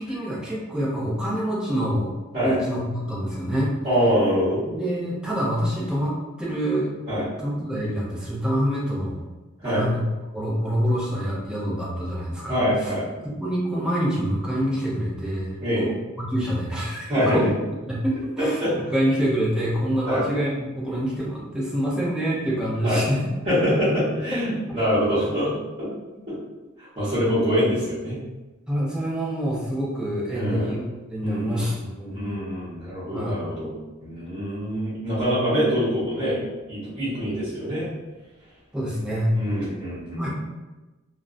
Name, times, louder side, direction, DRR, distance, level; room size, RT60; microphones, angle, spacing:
voice 1, 0.0-2.1 2.4-3.7 4.7-6.9 7.4-9.2 9.6-10.0 10.3-12.9 13.4-17.5 17.9-23.2 28.7-30.8 31.1-32.3 33.1-33.4 38.7-39.3 40.1-40.3, equal, 5° right, -6 dB, 0.5 m, -26 dB
voice 2, 3.8-4.6 7.1-7.2 9.6-9.9 12.5-13.1 15.6-15.9 17.1-17.5 18.4-18.7 20.1-20.2 22.8-23.0 23.4-25.9 26.3-26.4 27.0-28.2 30.3-30.8 31.2-31.7 32.1-33.7 34.0-37.9 39.3-40.3, equal, 25° right, -13 dB, 1.0 m, -24 dB
2.4 x 2.1 x 2.4 m, 1.1 s
head